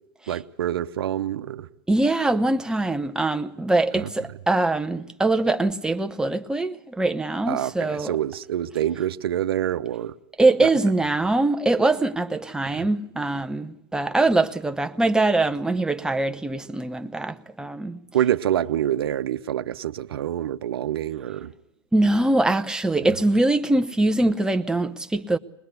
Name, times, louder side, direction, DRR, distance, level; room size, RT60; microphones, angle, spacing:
voice 1, 0.3-1.7 3.9-4.1 7.5-10.1 10.6-10.7 12.7-12.9 18.1-21.5 23.0-23.1, right 11 dB, 85° right, 0.8 m, -26 dB
voice 2, 1.9-8.1 10.4-18.0 21.9-25.4, right 2 dB, 5° right, 0.8 m, -23 dB
21.0 x 21.0 x 8.1 m
hypercardioid pair, 115°, 12 cm